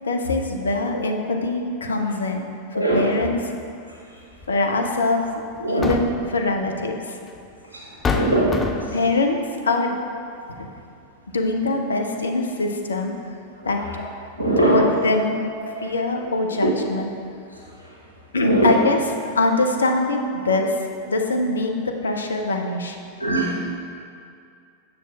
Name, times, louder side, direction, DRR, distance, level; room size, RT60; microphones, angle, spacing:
voice 1, 0.0-3.5 4.5-5.4 5.7-7.2 8.9-9.4 9.6-9.9 10.6-10.7 11.3-13.1 13.6-13.8 14.6-15.4 15.8-17.1 18.3-21.7 22.0-23.0, left 2 dB, 70° left, 3 dB, 0.5 m, -23 dB
voice 2, 2.7-3.1 5.6-5.9 8.1-8.6 14.4-14.8 18.4-18.7 23.2-23.6, right 1 dB, 85° right, -4 dB, 1.1 m, -20 dB
sound 1, 4.4-4.6 5.6-6.3 7.4-7.5 8.0-9.0, left 4 dB, 15° left, 0.4 m, -26 dB
7.5 x 6.9 x 2.4 m, 2.4 s
figure-of-eight pair, 90°, 0 cm